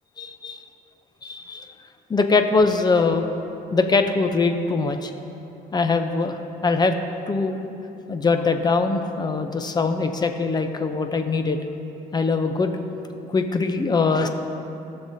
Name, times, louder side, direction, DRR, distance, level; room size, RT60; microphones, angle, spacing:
voice 1, 0.2-0.6 1.2-1.7 2.1-3.3 3.7-5.1 5.7-7.0 7.3-7.6 8.1-11.6 12.1-12.8 13.3-14.3, left 4 dB, 25° left, 7 dB, 0.7 m, -22 dB
19.0 x 6.8 x 2.8 m, 2.9 s
cardioid pair, 110°, 17 cm